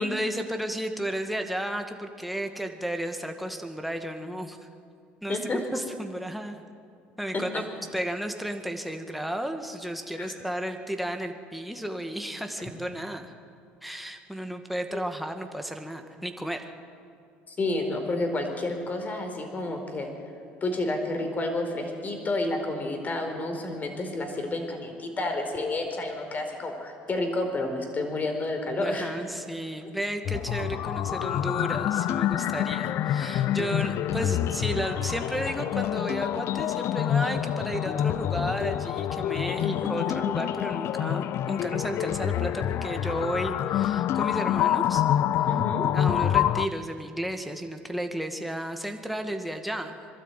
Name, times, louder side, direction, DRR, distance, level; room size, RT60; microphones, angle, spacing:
voice 1, 0.0-4.6 5.2-6.6 7.2-7.6 7.9-13.3 13.8-16.7 28.8-45.0 45.4-45.5 45.9-50.0, right 1 dB, ahead, 4 dB, 2.1 m, -33 dB
voice 2, 5.3-5.6 7.3-7.6 10.2-10.3 14.9-15.0 17.5-20.1 20.6-29.2 39.6-39.9 45.5-45.9, left 2 dB, 30° left, 4 dB, 4.4 m, -30 dB
sound 1, 30.2-46.7, left 11 dB, 55° left, 0.6 m, -27 dB
23.0 x 12.5 x 9.3 m, 2.4 s
supercardioid pair, 85°, 5 cm